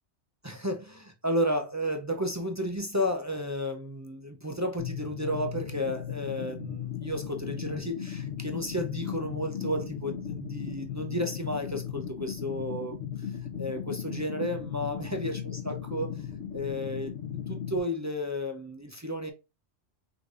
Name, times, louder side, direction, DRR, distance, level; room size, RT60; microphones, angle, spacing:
voice 1, 0.4-13.3 13.6-16.3 16.5-19.3, equal, 30° right, 0.3 m, -33 dB
sound 1, 4.8-17.8, left 9 dB, 85° left, 1.3 m, -37 dB
5.1 x 3.8 x 2.4 m
omnidirectional pair, 1.2 m